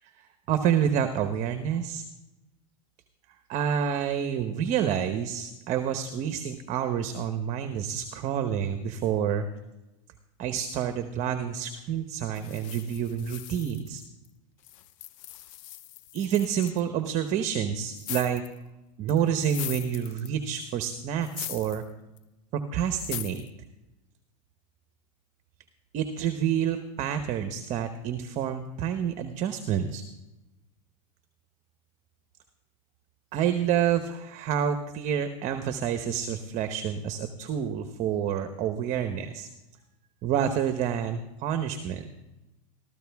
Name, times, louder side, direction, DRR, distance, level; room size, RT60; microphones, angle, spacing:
voice 1, 0.2-2.0 3.5-9.5 10.4-14.0 16.1-18.4 19.0-21.8 22.7-23.4 25.9-30.0 33.3-39.5 40.2-42.1, right 8 dB, 40° right, 8 dB, 1.0 m, -28 dB
sound 1, 12.3-14.3 14.6-16.8 17.9-18.6 19.1-20.5 21.2-21.8 22.2-22.3 23.0-23.5, left 14 dB, 65° left, 0.8 m, -40 dB
15.0 x 14.0 x 3.5 m, 0.99 s
supercardioid pair, 130°, 18 cm